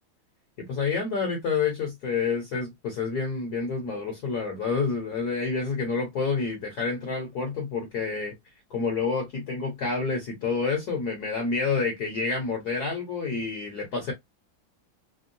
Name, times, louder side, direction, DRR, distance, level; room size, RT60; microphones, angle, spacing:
voice 1, 0.6-8.3 8.7-14.1, left 4 dB, 55° left, 1.3 m, -28 dB
3.5 x 2.2 x 2.6 m
omnidirectional pair, 2.3 m